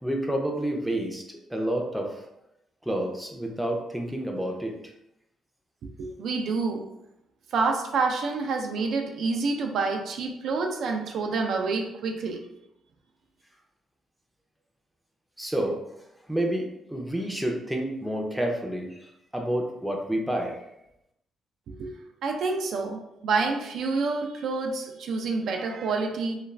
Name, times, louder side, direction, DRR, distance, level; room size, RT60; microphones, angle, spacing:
voice 1, 0.0-2.2 2.9-4.8 15.4-15.8 16.3-20.6, right 1 dB, 5° right, 1 dB, 0.5 m, -29 dB
voice 2, 6.0-6.8 7.5-12.4 21.8-21.9 22.2-26.4, right 4 dB, 70° right, 3 dB, 0.4 m, -28 dB
2.4 x 2.3 x 3.1 m, 0.84 s
cardioid pair, 90°, 0 cm